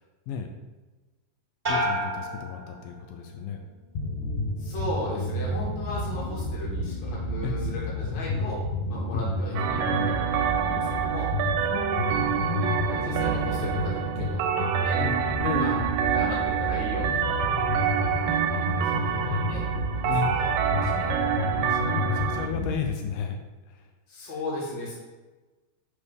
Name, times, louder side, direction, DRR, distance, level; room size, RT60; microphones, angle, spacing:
sound 1, 1.6-3.4 3.8-4.4, equal, 40° right, 0.6 m, -31 dB
voice 1, 1.7-3.6 7.4-7.6 9.1-9.3 11.7-13.2 15.0-15.9 20.1-20.4 21.6-23.8, left 7 dB, 80° left, 4 dB, 2.2 m, -34 dB
sound 2, 3.9-22.7, left 1 dB, 65° left, 2.3 m, -30 dB
voice 2, 4.6-8.6 8.9-11.3 12.9-15.0 15.6-15.8 16.1-17.5 18.4-19.7 20.3-20.5 20.7-21.1 24.1-24.9, left 1 dB, 40° left, -4 dB, 2.0 m, -36 dB
sound 3, 9.5-22.5, right 9 dB, 90° right, 2.4 m, -27 dB
8.0 x 5.1 x 3.5 m, 1.2 s
omnidirectional pair, 3.9 m